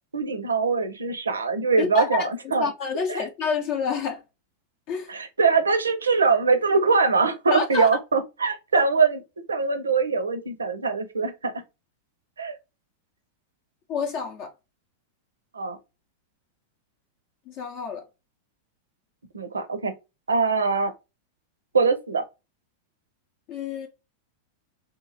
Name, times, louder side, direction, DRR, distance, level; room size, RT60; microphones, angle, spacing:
voice 1, 0.1-2.7 3.1-3.3 5.1-9.2 9.5-11.5 12.4-12.5 15.5-15.8 19.3-19.9 20.3-20.9 21.7-22.2, right 4 dB, 75° right, 0.5 m, -23 dB
voice 2, 1.8-2.3 2.6-4.2 4.9-5.1 7.5-8.0 13.9-14.5 17.5-18.0 23.5-23.9, left 5 dB, 45° left, 0.6 m, -28 dB
2.9 x 2.3 x 2.5 m
figure-of-eight pair, 90°, 0 cm